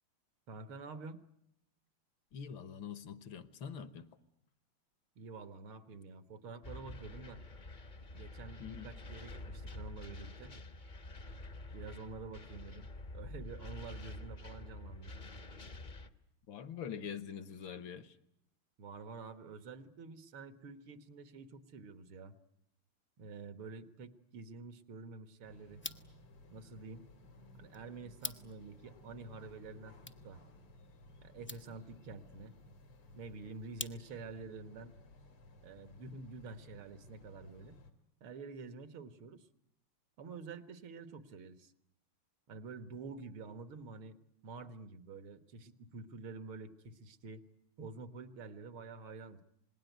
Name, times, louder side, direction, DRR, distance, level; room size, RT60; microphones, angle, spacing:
voice 1, 0.5-1.2 5.2-7.4 8.0-10.6 11.7-15.1 18.8-22.4 23.2-25.8 26.5-27.1 27.6-30.4 31.2-32.6 33.1-35.0 35.6-37.8 38.2-39.5 40.2-41.7 42.5-44.2 44.4-47.4 47.8-49.4, right 4 dB, 75° right, 2.2 m, -48 dB
voice 2, 2.3-4.1 8.6-8.9 16.5-18.2, left 7 dB, 70° left, 1.9 m, -44 dB
sound 1, 6.6-16.1, left 2 dB, 35° left, 0.8 m, -48 dB
sound 2, 25.4-37.9, left 1 dB, 85° left, 3.4 m, -58 dB
sound 3, 25.7-34.4, left 1 dB, 15° left, 0.4 m, -51 dB
27.0 x 20.0 x 9.2 m
omnidirectional pair, 2.4 m